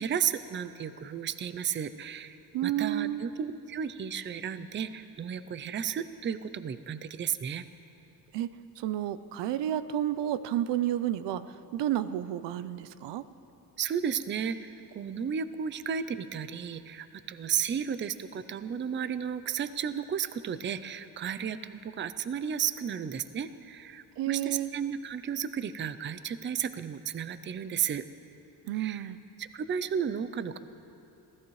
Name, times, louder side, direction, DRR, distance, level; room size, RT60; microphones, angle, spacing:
voice 1, 0.0-2.4 2.6-7.6 13.8-28.1 28.7-29.1 29.4-30.6, right 8 dB, 30° right, 13 dB, 0.5 m, -33 dB
voice 2, 2.5-3.2 8.3-11.5 11.7-13.2 24.2-24.7 28.7-29.2, right 12 dB, 85° right, 14 dB, 0.7 m, -31 dB
26.0 x 16.5 x 3.2 m, 2.8 s
cardioid pair, 125°, 41 cm